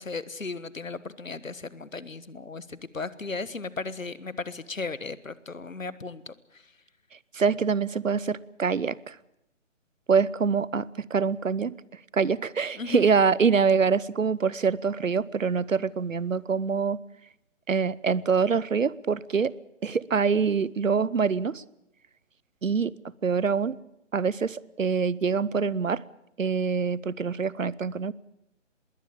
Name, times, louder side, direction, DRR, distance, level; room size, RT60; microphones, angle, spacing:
voice 1, 0.0-6.3 12.7-13.0, left 4 dB, 85° left, 17 dB, 1.5 m, -36 dB
voice 2, 7.3-9.2 10.1-11.7 12.1-17.0 17.7-19.5 19.8-21.6 22.6-22.9 23.2-23.7 24.1-26.0 26.4-28.1, right 5 dB, 80° right, 22 dB, 1.0 m, -25 dB
21.0 x 17.5 x 8.7 m, 0.84 s
figure-of-eight pair, 150°, 38 cm